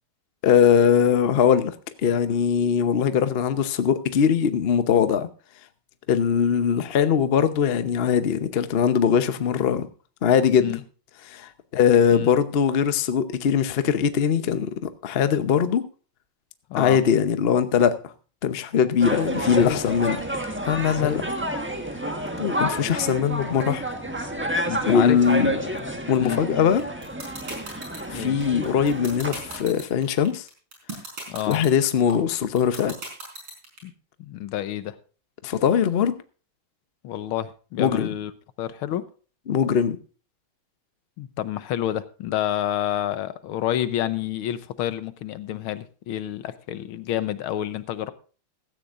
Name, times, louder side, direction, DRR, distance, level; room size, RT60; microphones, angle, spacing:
voice 1, 0.4-5.3 6.1-9.9 10.2-10.8 11.3-15.8 16.8-18.1 18.4-20.2 20.6-21.2 22.4-23.8 24.8-25.5 26.1-26.8 28.1-30.5 31.5-33.0 35.4-36.1 37.8-38.1 39.5-40.0, left 7 dB, 60° left, 0.6 m, -21 dB
sound 1, 19.0-29.6, right 1 dB, 10° right, 0.9 m, -30 dB
voice 2, 19.4-19.8 20.8-21.2 24.7-25.2 25.5-25.7 26.2-26.4 28.1-28.4 31.3-31.6 33.8-33.9 34.2-35.0 37.0-38.3 38.6-39.1 41.2-48.1, left 12 dB, 85° left, 1.7 m, -29 dB
sound 2, 26.8-33.8, right 3 dB, 75° right, 5.6 m, -36 dB
16.0 x 13.5 x 2.5 m
omnidirectional pair, 2.3 m